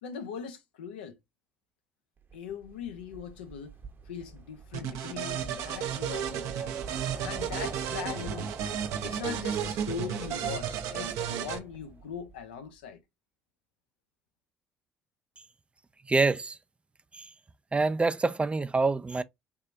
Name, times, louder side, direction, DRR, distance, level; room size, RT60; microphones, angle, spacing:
voice 1, 0.0-1.2 2.3-3.7 4.1-6.8 7.2-8.5 9.0-13.0, left 7 dB, 80° left, 0.6 m, -40 dB
Wind, 2.3-12.4, right 5 dB, 40° right, 0.9 m, -44 dB
sound 1, 4.7-11.6, right 9 dB, 65° right, 0.6 m, -33 dB
voice 2, 16.1-16.6 17.1-17.3 17.7-19.2, right 3 dB, 20° right, 0.3 m, -26 dB
3.5 x 3.2 x 2.5 m
hypercardioid pair, 55°, 6 cm